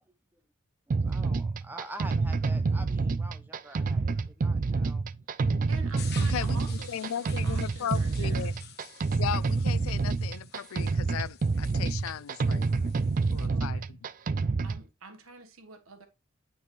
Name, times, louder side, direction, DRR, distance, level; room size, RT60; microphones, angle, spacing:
voice 1, 0.9-5.0, right 1 dB, 10° right, 0.7 m, -46 dB
sound 1, 0.9-14.8, right 4 dB, 40° right, 0.3 m, -28 dB
voice 2, 5.7-8.5 13.3-13.9 14.6-16.1, right 3 dB, 80° right, 1.4 m, -47 dB
sound 2, 6.0-13.5, left 8 dB, 50° left, 1.5 m, -50 dB
voice 3, 6.2-8.5 9.1-12.9 13.3-14.0, left 9 dB, 80° left, 0.4 m, -37 dB
9.2 x 5.5 x 3.1 m
head